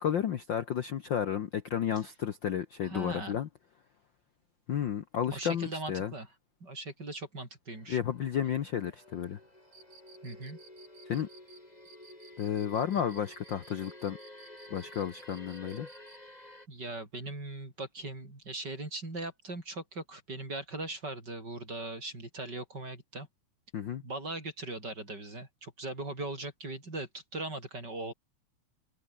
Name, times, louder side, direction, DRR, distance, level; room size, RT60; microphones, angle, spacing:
voice 1, 0.0-3.5 4.7-6.1 7.9-9.4 11.1-11.3 12.4-14.2 14.7-15.9 23.7-24.0, left 9 dB, 65° left, 1.1 m, -32 dB
voice 2, 2.8-3.4 5.3-6.3 6.6-8.0 10.2-10.6 16.7-23.3 24.0-28.1, right 2 dB, 30° right, 6.7 m, -39 dB
sound 1, 7.7-16.7, left 1 dB, 10° left, 5.1 m, -52 dB
Cricket, 9.7-16.2, right 5 dB, 80° right, 6.6 m, -56 dB
omnidirectional pair, 3.5 m